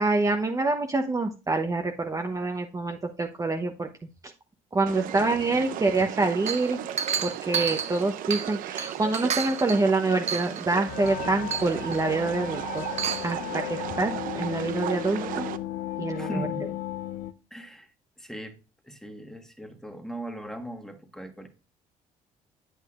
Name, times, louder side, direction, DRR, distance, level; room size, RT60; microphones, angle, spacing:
voice 1, 0.0-3.9 4.7-6.8 7.2-12.8 13.2-15.5 16.0-16.5, right 3 dB, 25° right, 0.9 m, -26 dB
sound 1, 4.9-15.6, right 11 dB, 75° right, 0.6 m, -36 dB
Chink clink, 6.5-8.5 8.8-9.8 10.3-10.6 11.1-11.2 11.5-12.0 12.8-13.3, right 7 dB, 50° right, 0.9 m, -30 dB
sound 2, 10.9-17.3, left 14 dB, 80° left, 0.5 m, -35 dB
voice 2, 16.2-16.7 17.5-17.9 18.2-18.6 18.8-21.5, right 1 dB, 5° left, 1.4 m, -38 dB
8.1 x 7.9 x 2.4 m
supercardioid pair, 80°, 14 cm